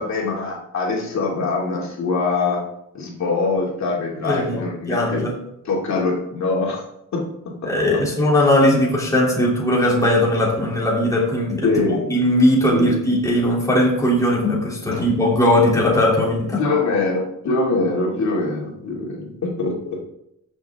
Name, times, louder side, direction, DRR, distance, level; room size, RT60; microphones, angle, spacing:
voice 1, 0.0-2.6 2.9-5.2 5.6-6.8 7.1-7.2 7.6-8.0 11.6-12.2 12.7-12.9 14.9-15.0 16.6-20.0, left 3 dB, 60° left, -3 dB, 2.6 m, -23 dB
voice 2, 4.2-5.3 7.6-11.7 12.1-16.6, left 1 dB, 10° left, -4 dB, 3.0 m, -19 dB
14.5 x 6.7 x 3.6 m, 0.81 s
cardioid pair, 140°, 32 cm